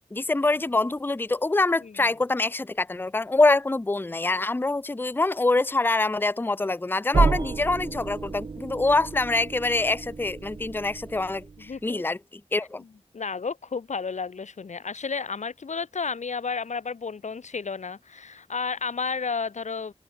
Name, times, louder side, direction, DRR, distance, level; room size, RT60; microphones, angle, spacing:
voice 1, 0.1-12.8, left 2 dB, 20° left, 0.5 m, -25 dB
sound 1, 7.1-11.8, right 4 dB, 45° right, 0.4 m, -30 dB
voice 2, 11.7-12.0 13.1-19.9, left 5 dB, 85° left, 0.9 m, -32 dB
wide cardioid pair, 45°, 12 cm